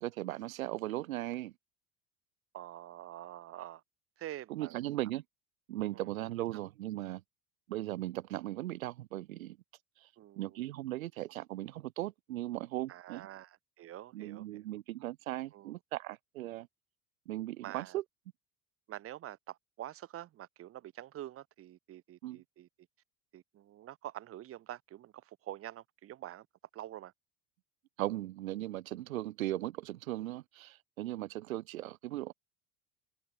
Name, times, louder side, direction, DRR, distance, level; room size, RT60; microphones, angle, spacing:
voice 1, 0.0-1.5 4.5-5.2 5.7-7.2 7.7-9.6 10.4-13.3 14.1-16.7 17.3-18.0 22.2-22.4 28.0-32.3, right 15 dB, 70° right, 1.0 m, -38 dB
voice 2, 2.5-3.8 4.2-4.8 5.9-6.1 10.2-10.6 12.9-14.6 15.5-15.8 17.6-18.0 18.9-22.7 23.3-26.5 26.7-27.1, right 13 dB, 35° right, 0.9 m, -46 dB
figure-of-eight pair, 70°, 42 cm